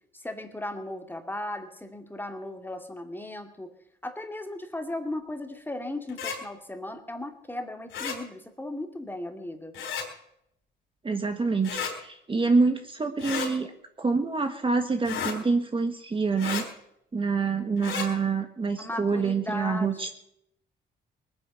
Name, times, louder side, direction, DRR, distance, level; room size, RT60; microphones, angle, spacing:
voice 1, 0.1-3.7 4.0-9.8 18.8-20.1, left 1 dB, 10° left, 5 dB, 2.2 m, -36 dB
sound 1, 6.1-6.4 7.9-8.2 9.7-10.1 11.6-11.9 13.2-13.5 15.0-15.4 16.4-16.6 17.8-18.1, left 6 dB, 85° left, 4.1 m, -32 dB
voice 2, 11.0-13.7 14.0-16.7 17.1-20.1, right 4 dB, 25° right, 6 dB, 1.4 m, -26 dB
19.5 x 9.7 x 7.0 m, 0.75 s
cardioid pair, 90°, 20 cm